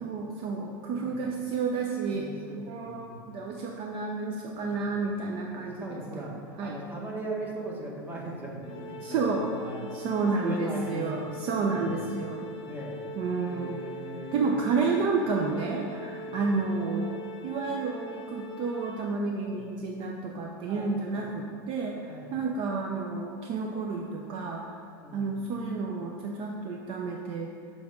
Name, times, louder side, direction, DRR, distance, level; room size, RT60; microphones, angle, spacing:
voice 1, 0.0-2.3 2.6-6.0 6.3-6.7 9.0-9.5 9.9-12.5 13.2-14.0 14.3-24.8 25.1-27.5, right 4 dB, 50° right, 1 dB, 0.6 m, -31 dB
voice 2, 2.1-3.3 4.6-9.9 10.1-11.2 11.7-12.0 12.4-13.0 13.5-14.6 16.3-16.6 19.5-19.7 20.7-21.3 22.1-22.4 25.0-25.5, right 2 dB, 15° right, -3 dB, 1.5 m, -40 dB
Organ, 8.6-19.5, left 1 dB, 45° left, 0.8 m, -42 dB
7.1 x 3.5 x 5.1 m, 2.2 s
supercardioid pair, 115°, 12 cm